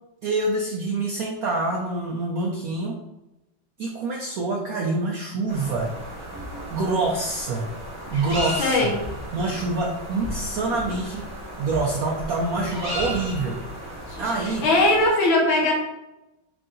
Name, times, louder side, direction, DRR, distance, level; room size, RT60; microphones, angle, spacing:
voice 1, 0.2-3.0 3.8-5.9 6.7-7.7 8.1-8.9 9.3-11.2 11.6-13.6 14.2-14.7, right 2 dB, 75° right, -2 dB, 0.8 m, -26 dB
sound 1, 5.5-15.1, equal, 15° left, 0.8 m, -35 dB
voice 2, 8.6-9.0 14.1-14.3 14.6-15.7, left 2 dB, 80° left, -2 dB, 1.9 m, -20 dB
4.7 x 2.5 x 3.7 m, 0.97 s
omnidirectional pair, 2.1 m